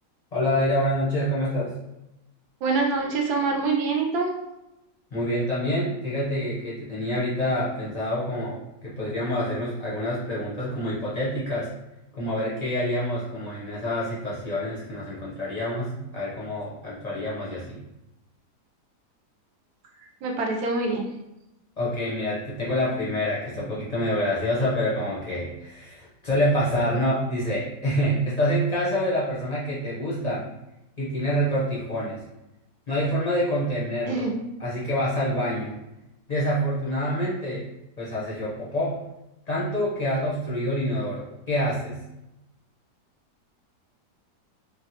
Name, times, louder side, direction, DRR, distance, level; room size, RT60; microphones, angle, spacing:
voice 1, 0.3-1.7 5.1-11.7 12.1-17.8 21.8-30.5 31.0-32.2 32.9-34.2 34.6-35.7 36.3-37.7 38.0-39.0 39.5-42.0, equal, 55° left, -8 dB, 0.4 m, -27 dB
voice 2, 2.6-4.3 20.2-21.0 34.1-34.3, right 3 dB, 75° right, 1 dB, 1.1 m, -25 dB
3.5 x 2.2 x 2.8 m, 0.93 s
omnidirectional pair, 1.8 m